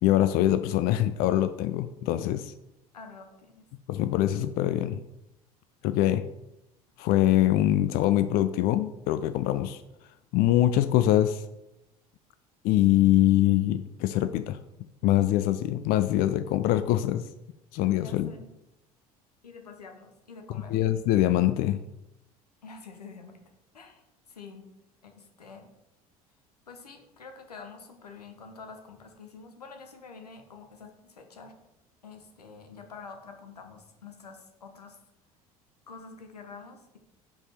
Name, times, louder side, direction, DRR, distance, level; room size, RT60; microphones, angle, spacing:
voice 1, 0.0-2.5 3.9-5.0 5.8-6.3 7.0-9.8 10.3-11.4 12.6-14.6 15.0-17.3 17.7-18.3 20.7-21.8, left 13 dB, 50° left, 11 dB, 0.4 m, -23 dB
voice 2, 2.9-3.7 17.9-18.5 19.4-20.8 22.6-23.4 23.7-24.7 25.0-25.7 26.7-31.6 32.0-35.0 35.9-37.0, left 4 dB, 90° left, 5 dB, 0.9 m, -47 dB
5.2 x 4.9 x 4.2 m, 0.89 s
figure-of-eight pair, 65°, 20 cm